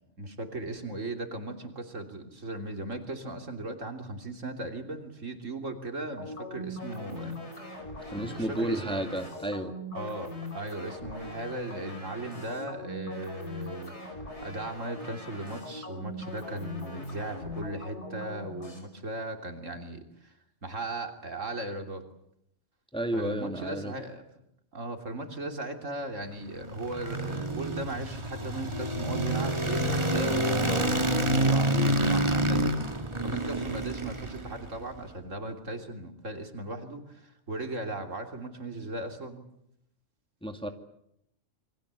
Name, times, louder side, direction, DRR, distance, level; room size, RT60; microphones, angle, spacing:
voice 1, 0.2-7.4 7.7-7.8 8.2-9.1 9.9-14.2 14.4-20.3 20.6-22.0 23.1-24.2 24.7-31.1 31.4-32.8 33.2-39.4, right 2 dB, 75° right, 5 dB, 3.5 m, -37 dB
sound 1, 6.2-18.8, left 1 dB, 60° left, 5.9 m, -41 dB
voice 2, 8.1-9.7 22.9-23.9 40.4-40.7, right 1 dB, 5° left, 5 dB, 2.1 m, -32 dB
sound 2, 26.4-34.8, right 1 dB, 20° right, 1.9 m, -28 dB
28.0 x 23.0 x 8.3 m, 0.78 s
omnidirectional pair, 1.3 m